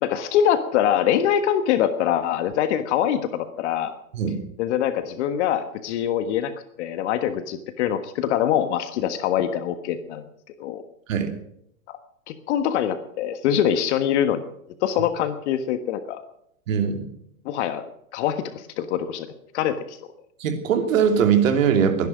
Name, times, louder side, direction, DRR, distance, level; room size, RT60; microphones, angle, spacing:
voice 1, 0.0-3.9 4.6-6.5 6.8-10.2 10.6-10.8 12.3-14.4 14.8-16.2 17.4-17.9 18.1-19.3 19.5-20.0, left 10 dB, 55° left, 10 dB, 1.5 m, -24 dB
voice 2, 16.7-17.0 20.4-22.1, right 7 dB, 65° right, 6 dB, 3.1 m, -21 dB
21.0 x 11.0 x 6.3 m, 0.74 s
hypercardioid pair, 125°, 42 cm